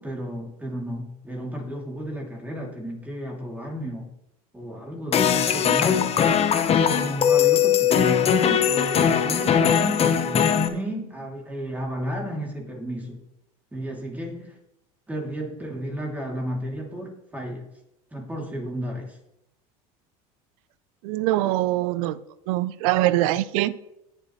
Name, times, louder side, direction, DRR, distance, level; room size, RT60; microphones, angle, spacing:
voice 1, 0.0-4.1 4.5-6.2 6.8-13.2 13.7-14.6 15.1-17.6 18.1-19.2, equal, 10° right, -1 dB, 2.8 m, -32 dB
sound 1, 5.1-10.7, left 8 dB, 35° left, 1.1 m, -20 dB
voice 2, 21.0-22.2 22.5-23.8, right 15 dB, 75° right, 17 dB, 0.6 m, -23 dB
18.0 x 6.7 x 3.2 m, 0.87 s
supercardioid pair, 110°, 18 cm